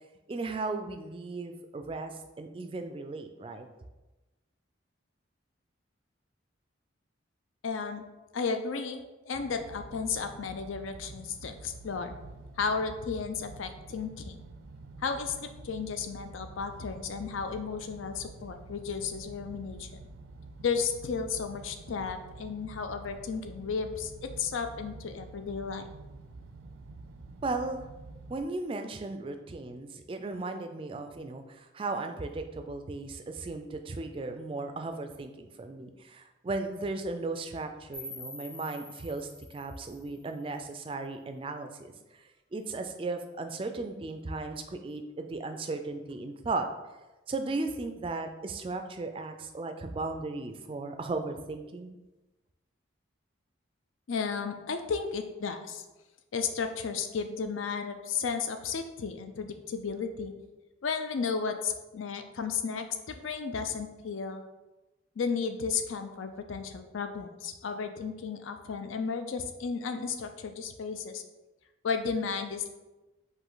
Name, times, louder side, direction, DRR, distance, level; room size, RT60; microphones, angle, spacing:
voice 1, 0.3-3.7 27.4-27.8 28.3-46.7 47.3-52.0, right 3 dB, 25° right, 6 dB, 0.3 m, -36 dB
voice 2, 7.6-8.0 8.3-12.1 12.6-14.4 15.0-19.9 20.6-25.9 54.1-55.8 56.3-60.3 60.8-64.4 65.2-71.2 71.8-72.7, left 5 dB, 80° left, 7 dB, 0.4 m, -33 dB
sound 1, 9.3-28.4, right 2 dB, 90° right, 0.4 m, -48 dB
sound 2, 37.9-40.9, left 1 dB, 25° left, 1.0 m, -47 dB
5.0 x 2.6 x 3.8 m, 1.1 s
head